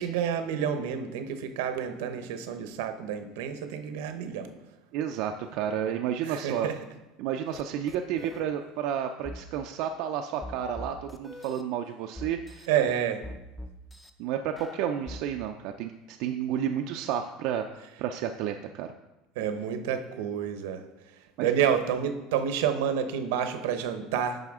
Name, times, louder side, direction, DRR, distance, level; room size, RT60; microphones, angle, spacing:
voice 1, 0.0-4.5 6.2-6.8 12.7-13.2 19.4-24.4, right 8 dB, 85° right, 8 dB, 0.8 m, -29 dB
voice 2, 4.9-6.7 7.2-12.7 14.2-17.6 18.0-18.9 21.4-21.5, right 9 dB, 60° right, 5 dB, 0.4 m, -31 dB
sound 1, 7.5-7.6 7.9-8.4 9.2-9.4 10.4-11.6 12.2-12.7 13.2-14.1 14.6-15.2, left 1 dB, 10° left, 0.5 m, -41 dB
9.1 x 5.6 x 3.6 m, 1.0 s
cardioid pair, 145°, 0 cm